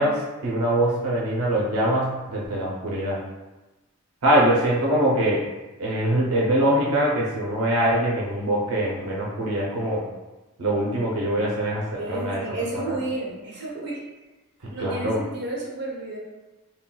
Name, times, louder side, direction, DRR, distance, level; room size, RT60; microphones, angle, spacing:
voice 1, 0.0-3.2 4.2-5.4 5.8-10.0 10.6-12.4 12.8-13.0 14.6-15.2, right 1 dB, 85° right, -4 dB, 0.5 m, -23 dB
voice 2, 12.0-14.0 14.7-16.2, right 2 dB, 50° right, -4 dB, 0.8 m, -31 dB
3.6 x 2.2 x 2.2 m, 1.1 s
head